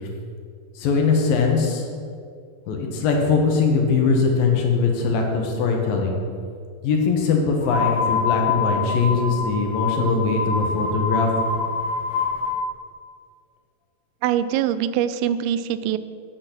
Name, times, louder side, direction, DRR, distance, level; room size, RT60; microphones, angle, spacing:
voice 1, 0.8-1.9 2.7-6.2 6.8-11.4, left 4 dB, 75° left, 1 dB, 2.9 m, -21 dB
sound 1, 7.6-12.6, left 5 dB, 55° left, 0.8 m, -25 dB
voice 2, 14.2-16.0, right 10 dB, 90° right, 13 dB, 2.5 m, -23 dB
8.6 x 8.6 x 6.0 m, 2.2 s
omnidirectional pair, 4.3 m